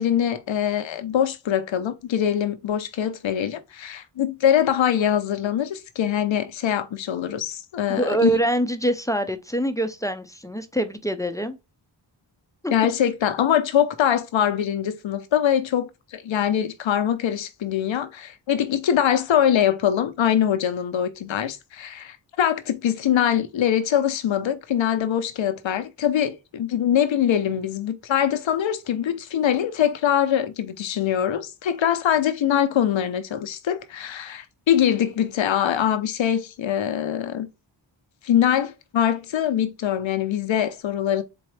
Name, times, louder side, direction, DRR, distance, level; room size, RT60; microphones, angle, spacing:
voice 1, 0.0-8.3 12.7-37.5 38.2-41.2, left 9 dB, 85° left, 0.8 m, -23 dB
voice 2, 8.0-11.6 12.6-12.7, right 1 dB, 5° left, 0.6 m, -24 dB
4.3 x 3.8 x 3.2 m
cardioid pair, 70°, 45 cm